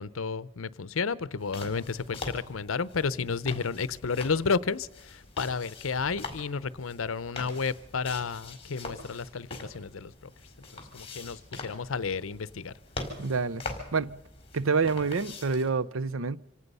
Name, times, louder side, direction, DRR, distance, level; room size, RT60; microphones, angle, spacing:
voice 1, 0.0-10.3 10.7-12.7, left 5 dB, 80° left, 0.7 m, -32 dB
sound 1, 1.4-15.7, left 3 dB, 30° left, 4.2 m, -43 dB
voice 2, 13.2-13.6 13.9-14.2 14.5-16.4, right 4 dB, 80° right, 0.7 m, -27 dB
26.0 x 18.0 x 5.5 m
head